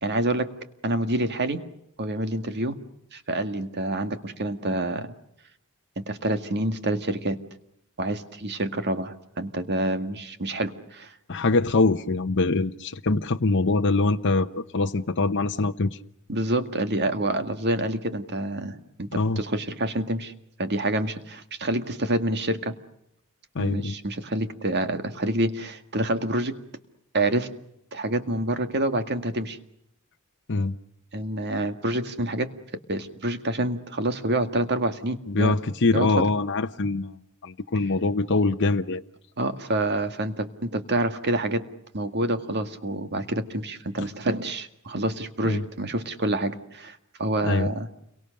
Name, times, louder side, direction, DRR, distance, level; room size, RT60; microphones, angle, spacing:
voice 1, 0.0-0.5 0.8-1.6 2.0-2.8 3.1-5.1 6.0-7.4 8.0-11.1 16.3-20.3 20.6-22.8 23.6-26.6 27.1-27.5 27.9-29.6 31.1-32.5 32.9-35.6 35.9-36.1 39.4-41.6 41.9-47.9, right 1 dB, 50° right, 1.9 m, -27 dB
voice 2, 11.3-16.0 19.1-19.4 23.5-24.0 30.5-30.8 35.3-39.0 44.0-44.1 45.4-45.6 47.4-47.7, left 3 dB, 55° left, 0.9 m, -24 dB
29.5 x 23.5 x 6.6 m
head